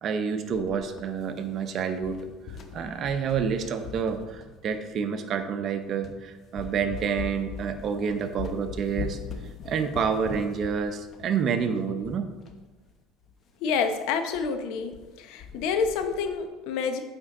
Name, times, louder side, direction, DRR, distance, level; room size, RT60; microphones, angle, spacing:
voice 1, 0.0-2.3 2.7-9.2 9.6-12.3, right 6 dB, 50° right, 8 dB, 0.8 m, -28 dB
sound 1, 0.5-1.7 2.0-5.0 5.5-5.6 6.0-6.2 6.5-12.6 12.9-13.0 13.2-13.3 13.7-13.9 14.3-14.5 14.7-15.1 15.4-16.3, left 5 dB, 45° left, 0.9 m, -41 dB
voice 2, 13.6-14.9 15.2-17.0, left 5 dB, 75° left, 7 dB, 0.8 m, -28 dB
8.8 x 4.5 x 3.8 m, 1.2 s
supercardioid pair, 95°, 0 cm